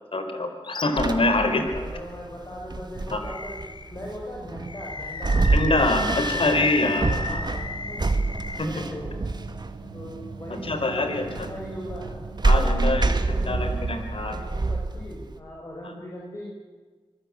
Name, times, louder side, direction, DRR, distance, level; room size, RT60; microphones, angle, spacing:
voice 1, 0.1-1.7 3.1-3.2 5.5-7.4 8.6-8.7 10.6-11.5 12.4-14.4, left 2 dB, 65° left, 7 dB, 4.2 m, -25 dB
Animal, 0.6-1.0 1.5-1.6 3.2-4.0 4.6-8.6, left 3 dB, 50° left, 1.8 m, -33 dB
sound 1, 1.0-15.4, right 3 dB, 45° right, 1.9 m, -27 dB
voice 2, 1.8-5.4 6.3-6.6 7.1-8.1 8.6-9.1 9.9-12.2 12.7-13.8 14.3-16.4, equal, 35° left, -3 dB, 6.9 m, -39 dB
sound 2, 5.3-14.0, right 4 dB, 85° right, 3.6 m, -41 dB
25.5 x 20.0 x 8.6 m, 1.5 s
wide cardioid pair, 65°, 10 cm